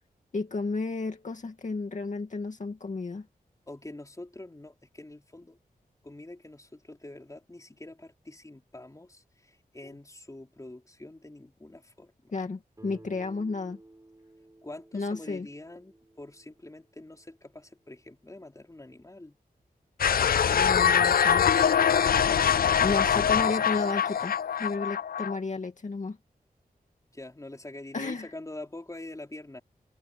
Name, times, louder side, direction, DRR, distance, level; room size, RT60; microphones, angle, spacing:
voice 1, 0.3-3.3 12.3-13.8 14.9-15.5 20.5-21.5 22.8-26.2 27.9-28.3, left 3 dB, 55° left, 2.1 m, -32 dB
voice 2, 3.7-5.6 6.0-12.3 14.6-19.4 22.6-22.9 27.1-29.6, left 2 dB, 20° left, 4.4 m, -45 dB
Guitar, 12.8-17.6, right 2 dB, 20° right, 7.1 m, -54 dB
sound 1, 20.0-25.4, left 8 dB, 75° left, 0.5 m, -23 dB
wide cardioid pair, 95°, 16 cm